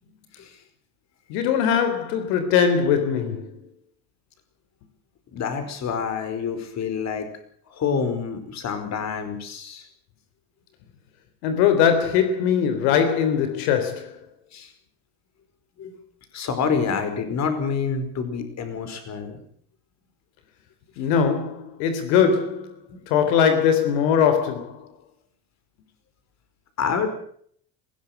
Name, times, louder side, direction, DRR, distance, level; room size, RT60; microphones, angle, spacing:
voice 1, 1.3-3.6 11.4-14.2 21.0-22.7 23.1-24.8, left 7 dB, 75° left, 3.6 m, -21 dB
voice 2, 5.3-7.3 7.7-9.9 14.5-14.7 15.8-15.9 16.3-19.4 22.9-23.2 26.8-27.1, left 6 dB, 35° left, 5.0 m, -27 dB
20.5 x 17.0 x 8.0 m
supercardioid pair, 130°, 45 cm